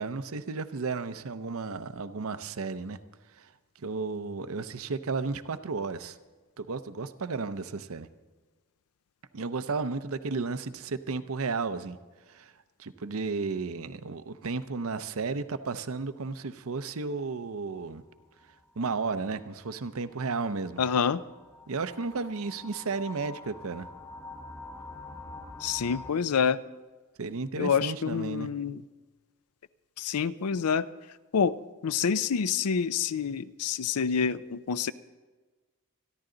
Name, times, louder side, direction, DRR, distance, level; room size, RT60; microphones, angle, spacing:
voice 1, 0.0-3.0 3.4-3.5 3.8-6.2 6.6-8.1 9.3-12.0 12.3-12.5 12.8-18.0 18.8-20.8 21.7-23.9 27.2-28.5, right 4 dB, 65° right, 11 dB, 0.7 m, -33 dB
sound 1, 17.7-26.1, left 2 dB, 15° left, 0.8 m, -47 dB
voice 2, 20.8-21.2 25.6-26.6 27.6-28.8 30.0-30.9 31.3-31.6 31.8-34.9, left 6 dB, 85° left, 15 dB, 0.5 m, -27 dB
27.5 x 11.0 x 3.9 m, 1.3 s
head